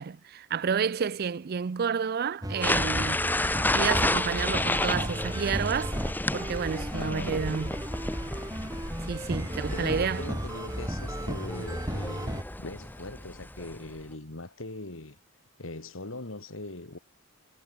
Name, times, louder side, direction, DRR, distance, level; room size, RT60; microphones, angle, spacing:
voice 1, 0.0-3.3 3.7-5.9 6.3-7.8 9.1-10.3, right 6 dB, 45° right, 0.4 m, -30 dB
sound 1, 2.4-12.4, right 1 dB, 15° right, 2.6 m, -35 dB
sound 2, 2.6-14.0, left 1 dB, 10° left, 1.8 m, -31 dB
voice 2, 6.9-7.7 9.7-15.2 15.6-17.0, left 2 dB, 60° left, 2.2 m, -40 dB
head